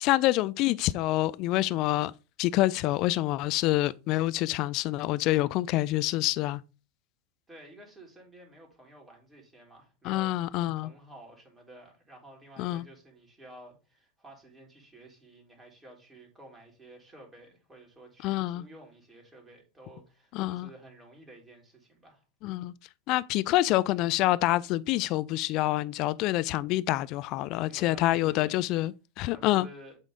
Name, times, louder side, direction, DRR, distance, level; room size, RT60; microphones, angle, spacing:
voice 1, 0.0-2.1 2.4-6.6 10.0-10.9 12.6-12.8 18.2-18.6 20.3-20.7 22.4-22.7 23.1-29.7, left 17 dB, 50° left, 0.3 m, -27 dB
voice 2, 7.5-22.2 27.6-28.6 29.3-30.0, right 1 dB, 15° right, 3.1 m, -52 dB
8.0 x 3.6 x 3.8 m
figure-of-eight pair, 85°, 0 cm